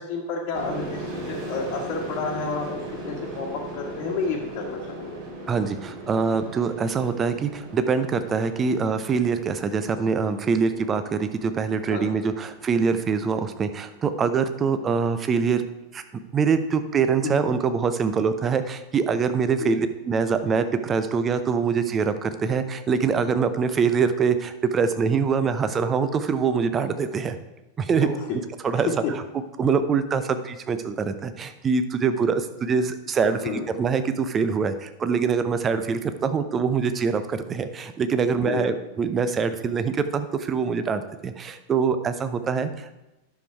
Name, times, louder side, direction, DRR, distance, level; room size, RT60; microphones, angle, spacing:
voice 1, 0.0-5.2 11.9-12.2 17.2-17.5 19.6-19.8 28.0-28.1 33.4-33.6 38.3-38.7, left 4 dB, 40° left, -4 dB, 1.5 m, -31 dB
sound 1, 0.5-14.0, right 1 dB, 45° right, 3.8 m, -39 dB
voice 2, 5.5-15.6 15.9-16.0 16.3-27.4 27.8-28.1 28.6-29.2 29.6-42.9, right 5 dB, 25° right, 10 dB, 0.7 m, -24 dB
10.5 x 7.0 x 4.6 m, 1.0 s
figure-of-eight pair, 90°, 0 cm